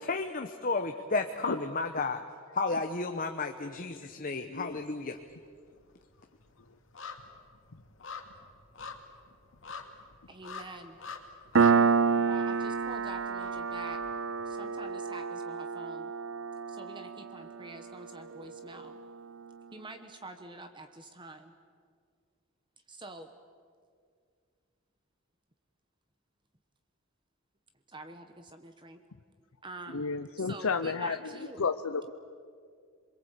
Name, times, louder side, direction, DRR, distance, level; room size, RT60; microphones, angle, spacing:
voice 1, 0.0-2.2 2.5-5.2, left 3 dB, 40° left, 5 dB, 1.0 m, -32 dB
sound 1, 4.0-4.8 5.1-15.0 15.4-15.5, left 5 dB, 65° left, 2.3 m, -47 dB
voice 2, 4.5-4.8 29.9-31.2 31.6-32.1, left 5 dB, 90° left, 8 dB, 0.7 m, -31 dB
voice 3, 10.3-11.0 12.2-14.0 14.5-16.1 16.7-19.0 19.7-21.5 22.9-23.3 27.9-29.0 29.6-30.1 30.4-31.7, right 2 dB, 25° right, 7 dB, 1.1 m, -46 dB
Piano, 11.6-18.7, right 5 dB, 60° right, 0.8 m, -29 dB
28.0 x 22.0 x 8.2 m, 2.2 s
head